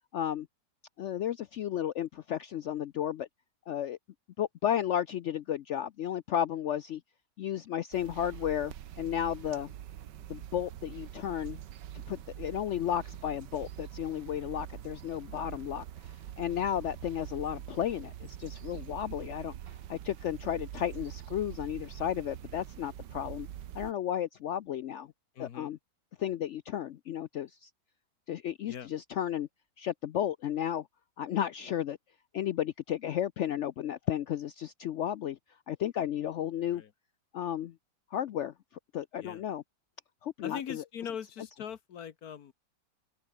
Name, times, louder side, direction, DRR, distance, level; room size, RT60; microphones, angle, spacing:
voice 1, 0.1-0.5 1.0-3.3 3.7-4.0 4.4-7.0 7.4-9.7 10.3-11.6 12.1-23.5 23.7-25.1 25.4-25.8 26.2-27.7 28.3-29.5 29.8-30.9 31.2-32.0 32.3-35.4 35.7-36.8 37.3-37.7 38.1-38.5 38.9-39.6 40.2-40.8, left 10 dB, 85° left, 0.6 m, -33 dB
sound 1, 7.9-23.9, right 11 dB, 80° right, 1.6 m, -44 dB
voice 2, 25.3-25.7 28.7-28.9 36.7-36.9 39.2-39.4 40.4-42.5, left 8 dB, 60° left, 1.5 m, -41 dB
open air
omnidirectional pair, 1.9 m